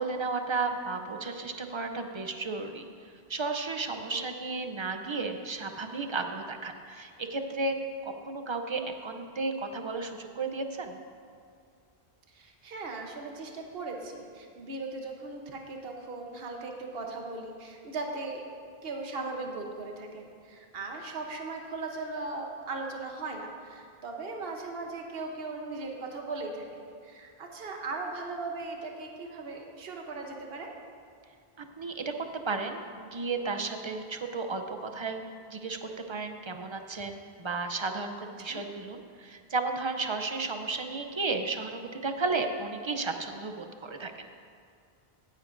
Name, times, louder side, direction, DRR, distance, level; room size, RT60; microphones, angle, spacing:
voice 1, 0.0-7.8 8.0-11.0 31.6-35.2 35.5-44.3, right 3 dB, 35° right, 6 dB, 0.5 m, -33 dB
voice 2, 3.9-4.2 12.3-18.4 18.8-30.7 38.5-38.6, right 3 dB, 70° right, 2 dB, 1.2 m, -38 dB
16.5 x 9.7 x 2.6 m, 2.3 s
omnidirectional pair, 1.0 m